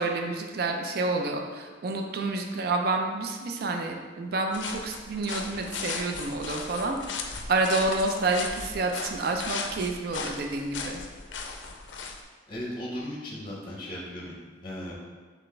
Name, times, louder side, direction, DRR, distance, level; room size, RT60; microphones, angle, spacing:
voice 1, 0.0-11.0, right 2 dB, 55° right, 3 dB, 0.4 m, -29 dB
sound 1, 4.5-12.2, left 5 dB, 85° left, 0.4 m, -37 dB
voice 2, 12.5-14.3 14.6-14.9, left 1 dB, 30° left, -3 dB, 0.6 m, -36 dB
4.1 x 3.3 x 3.2 m, 1.4 s
head